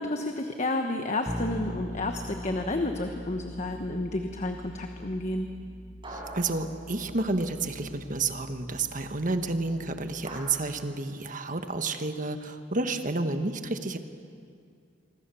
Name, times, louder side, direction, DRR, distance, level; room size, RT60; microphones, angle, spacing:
voice 1, 0.0-5.5, left 2 dB, 40° left, 5 dB, 1.2 m, -31 dB
Bass guitar, 1.3-11.1, left 1 dB, 5° left, 0.6 m, -42 dB
sound 1, 2.4-3.6 6.0-7.7 10.2-10.4, right 2 dB, 30° right, 5.0 m, -45 dB
voice 2, 6.1-14.0, right 3 dB, 45° right, 8 dB, 1.4 m, -30 dB
26.0 x 25.0 x 7.1 m, 2.3 s
head